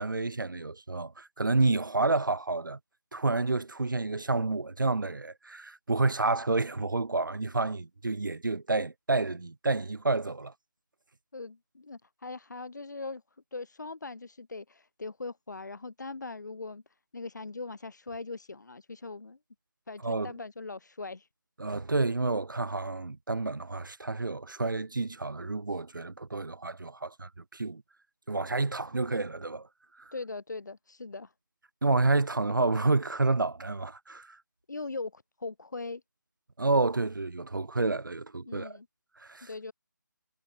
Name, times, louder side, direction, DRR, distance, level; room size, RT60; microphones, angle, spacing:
voice 1, 0.0-2.8 3.1-10.5 20.0-20.3 21.6-27.8 28.3-29.7 30.0-30.1 31.8-34.4 36.6-38.8 39.2-39.5, right 3 dB, 75° right, 0.7 m, -29 dB
voice 2, 11.3-13.2 13.5-16.8 17.1-19.4 19.9-21.3 30.1-31.3 34.7-36.0 38.5-38.9 39.4-39.7, left 3 dB, 60° left, 1.4 m, -40 dB
figure-of-eight pair, 155°, 11 cm